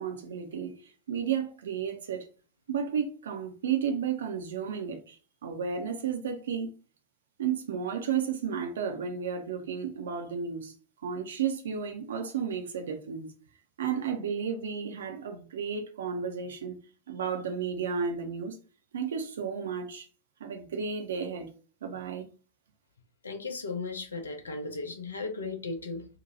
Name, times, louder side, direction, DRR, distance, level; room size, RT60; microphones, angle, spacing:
voice 1, 0.0-2.3 2.7-6.7 7.4-10.7 11.0-13.3 13.8-16.7 17.1-18.6 18.9-20.1 20.4-21.5 21.8-22.2, right 7 dB, 65° right, 0.5 m, -33 dB
voice 2, 23.2-26.1, left 3 dB, 70° left, 0.6 m, -36 dB
2.8 x 2.1 x 4.0 m
figure-of-eight pair, 90°, 0 cm